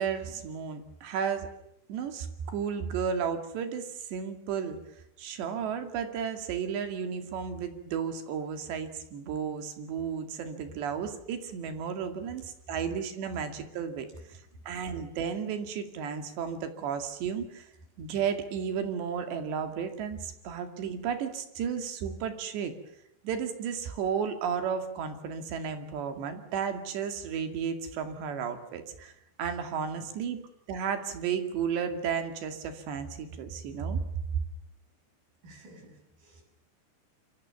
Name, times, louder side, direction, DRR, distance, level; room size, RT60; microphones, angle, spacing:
voice 1, 0.0-1.5 1.9-4.8 5.2-14.4 14.7-17.7 18.0-22.7 23.2-29.1 29.4-30.4 30.7-34.0 34.3-34.4, right 7 dB, 85° right, 7 dB, 4.5 m, -33 dB
voice 2, 35.4-36.4, right 1 dB, 55° right, 4 dB, 8.6 m, -53 dB
27.5 x 24.5 x 7.0 m, 0.78 s
omnidirectional pair, 4.9 m